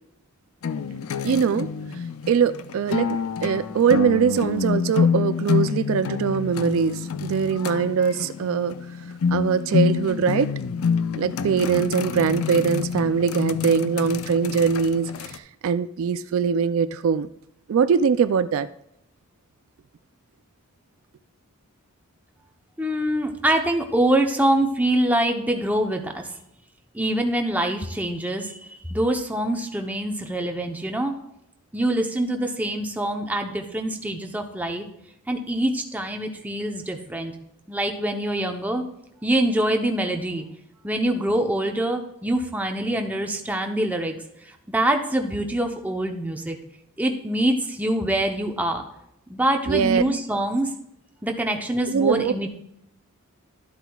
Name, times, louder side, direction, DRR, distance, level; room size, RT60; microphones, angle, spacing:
sound 1, 0.6-15.4, left 6 dB, 70° left, 0.4 m, -27 dB
voice 1, 1.2-1.7 2.3-8.8 9.3-10.5 11.1-17.3 17.7-18.7 49.7-50.0 51.9-52.3, right 6 dB, 65° right, 13 dB, 0.3 m, -22 dB
voice 2, 22.8-26.3 26.9-31.1 31.7-34.9 35.3-37.3 37.7-38.8 39.2-40.4 40.8-44.2 44.4-46.6 47.0-48.8 49.3-50.7 51.2-52.5, right 1 dB, 5° right, 3 dB, 0.7 m, -24 dB
12.0 x 8.0 x 2.3 m, 0.79 s
head